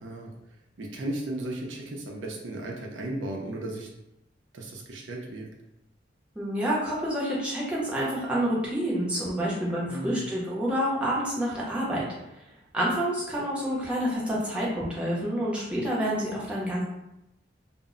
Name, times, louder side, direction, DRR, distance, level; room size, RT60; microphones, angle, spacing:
voice 1, 0.0-0.3 0.8-3.9 4.5-5.5 9.9-10.2, right 1 dB, 80° right, 0 dB, 0.5 m, -35 dB
voice 2, 6.4-12.1 12.7-16.8, equal, 5° right, -6 dB, 0.6 m, -28 dB
2.0 x 2.0 x 3.6 m, 0.86 s
head